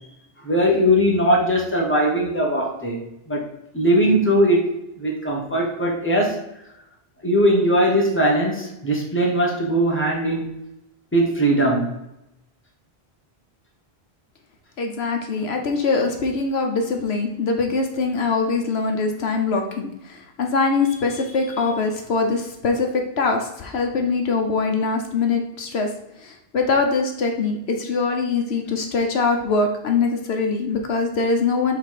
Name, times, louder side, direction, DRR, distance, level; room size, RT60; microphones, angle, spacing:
voice 1, 0.4-3.0 3.3-3.4 3.7-4.7 5.0-6.4 7.2-10.5 11.1-11.9, equal, 10° left, -1 dB, 1.4 m, -19 dB
voice 2, 14.8-25.9 26.2-31.8, left 4 dB, 75° left, 3 dB, 1.1 m, -23 dB
6.4 x 3.8 x 4.9 m, 0.86 s
omnidirectional pair, 1.1 m